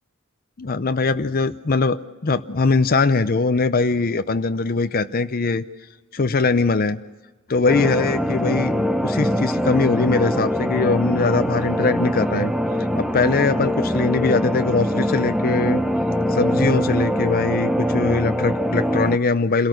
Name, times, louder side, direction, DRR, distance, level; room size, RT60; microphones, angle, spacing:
voice 1, 0.6-5.6 6.1-7.0 7.5-12.5 13.0-15.8 16.3-19.7, left 3 dB, 45° left, 9 dB, 0.6 m, -21 dB
sound 1, 7.7-19.2, equal, ahead, 0.7 m, -23 dB
27.5 x 18.0 x 6.4 m, 1.2 s
head